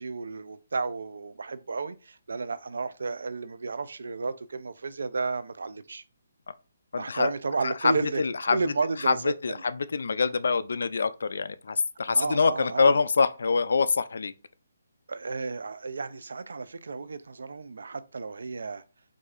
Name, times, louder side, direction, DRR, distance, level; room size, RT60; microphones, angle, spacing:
voice 1, 0.0-6.0 7.0-8.2 8.5-9.6 12.1-13.0 15.1-18.8, right 4 dB, 75° right, 0.4 m, -32 dB
voice 2, 6.9-7.3 7.6-7.9 8.2-8.6 9.1-9.2 9.4-14.3, left 4 dB, 70° left, 0.3 m, -25 dB
4.8 x 2.6 x 2.4 m
hypercardioid pair, 165°, 0 cm